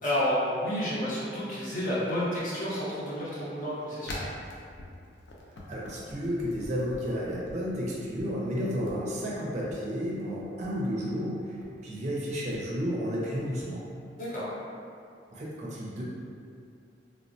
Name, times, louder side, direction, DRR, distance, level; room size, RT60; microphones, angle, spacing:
voice 1, 0.0-4.2 14.2-14.5, equal, 50° left, -8 dB, 0.8 m, -30 dB
sound 1, 4.1-7.5 8.0-8.3 8.7-9.0 9.5-9.8 10.4-10.7 11.4-11.7 12.3-12.6 13.4-13.7, left 1 dB, 70° left, 0.5 m, -43 dB
voice 2, 5.7-11.3 11.8-13.8 15.3-16.0, equal, 40° right, -5 dB, 0.4 m, -32 dB
3.1 x 2.1 x 2.6 m, 2.4 s
head